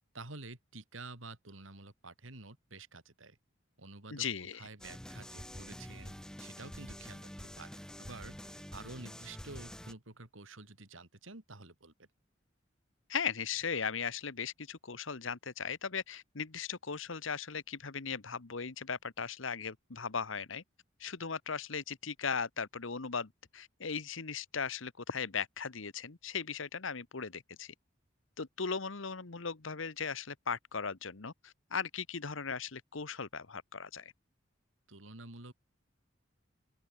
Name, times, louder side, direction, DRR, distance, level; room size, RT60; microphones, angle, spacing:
voice 1, 0.1-3.4 3.8-4.3 4.5-12.1 34.9-35.5, right 3 dB, 80° right, 3.5 m, -50 dB
voice 2, 4.1-4.6 13.1-20.6 21.0-27.7 28.4-34.1, left 6 dB, 80° left, 1.2 m, -38 dB
sound 1, 4.8-9.9, equal, 5° left, 1.0 m, -47 dB
open air
head